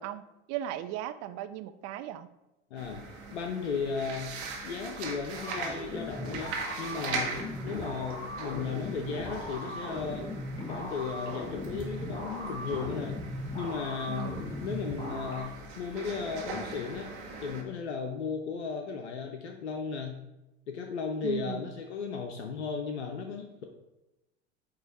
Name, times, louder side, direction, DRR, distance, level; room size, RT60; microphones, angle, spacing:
voice 1, 0.0-2.3 14.1-14.5 21.2-21.6, right 12 dB, 50° right, 11 dB, 0.4 m, -37 dB
voice 2, 2.7-3.0 3.3-4.3 4.6-7.3 7.6-10.2 10.7-13.2 13.6-14.3 14.6-17.1 17.4-20.2 20.7-23.6, left 5 dB, 85° left, 3 dB, 0.5 m, -35 dB
sound 1, 2.8-17.6, right 4 dB, 70° right, 0.9 m, -41 dB
sound 2, 5.4-15.4, left 1 dB, 15° left, 1.4 m, -38 dB
4.7 x 2.4 x 4.0 m, 0.97 s
hypercardioid pair, 80°, 33 cm